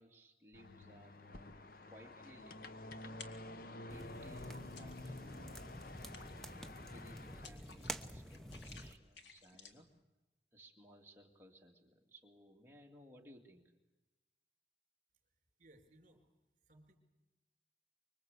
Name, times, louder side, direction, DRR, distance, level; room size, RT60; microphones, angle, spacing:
voice 1, 0.0-3.2 3.8-9.9 10.5-13.7, equal, 15° right, 0 dB, 2.5 m, -61 dB
sound 1, 0.5-7.5, left 2 dB, 55° left, 0.9 m, -51 dB
fun with a water puddle, 3.2-3.7 4.1-5.4 5.7-10.0, left 5 dB, 80° left, 1.9 m, -57 dB
sound 2, 3.9-9.0, equal, ahead, 0.9 m, -49 dB
voice 2, 15.2-16.2 16.6-17.0, right 1 dB, 40° right, 5 dB, 4.3 m, -65 dB
25.0 x 23.0 x 8.3 m, 1.1 s
head